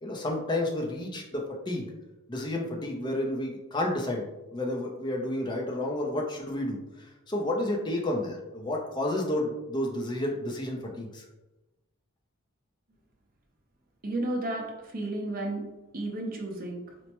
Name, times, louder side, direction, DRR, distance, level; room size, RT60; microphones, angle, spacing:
voice 1, 0.0-1.9 2.3-4.3 4.5-11.2, left 1 dB, 20° left, 0 dB, 0.5 m, -31 dB
voice 2, 14.0-15.7 15.9-16.8, right 2 dB, 40° right, 0 dB, 0.6 m, -32 dB
4.4 x 2.1 x 2.9 m, 1.0 s
head